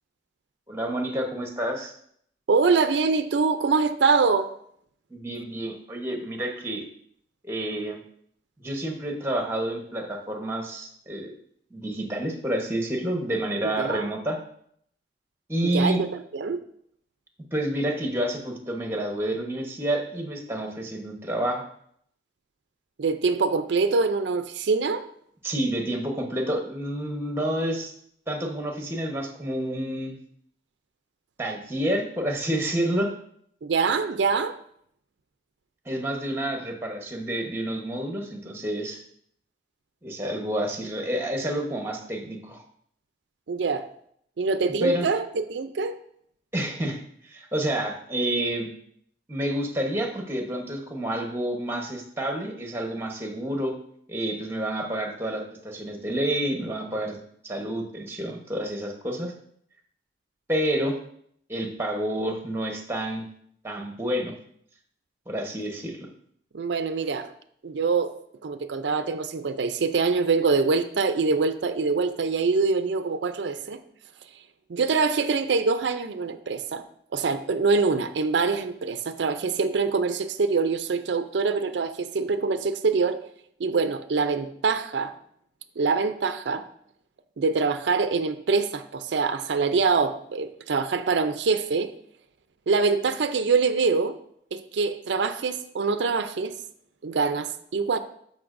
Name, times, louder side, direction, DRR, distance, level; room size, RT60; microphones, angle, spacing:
voice 1, 0.7-1.9 5.1-6.8 7.4-8.0 8.6-11.3 11.7-14.4 15.5-16.0 17.5-21.7 25.4-27.9 28.3-30.2 31.4-33.1 35.9-39.0 40.0-42.6 44.8-45.1 46.5-48.7 49.3-53.8 54.1-57.2 57.4-59.3 60.5-60.9 61.5-63.2 63.6-64.3 65.3-66.1, right 1 dB, 15° right, 2 dB, 1.0 m, -29 dB
voice 2, 2.5-4.5 13.8-14.1 15.6-16.6 23.0-25.0 33.6-34.5 43.5-43.9 44.4-46.0 66.5-67.3 67.6-68.2 68.4-73.8 74.7-76.8 77.1-83.2 83.6-85.1 85.8-86.6 87.4-91.9 92.7-94.2 94.5-96.5 97.0-98.0, right 4 dB, 85° right, 10 dB, 0.5 m, -24 dB
13.0 x 5.4 x 2.5 m, 0.67 s
head